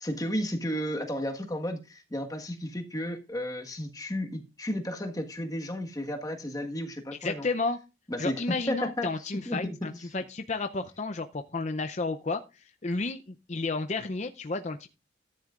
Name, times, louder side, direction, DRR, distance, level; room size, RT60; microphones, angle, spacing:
voice 1, 0.0-7.5 8.1-8.4 8.7-9.8, equal, 20° left, 1.5 m, -33 dB
voice 2, 7.2-7.8 8.2-14.9, left 3 dB, 35° left, 0.6 m, -32 dB
14.0 x 10.5 x 2.5 m
head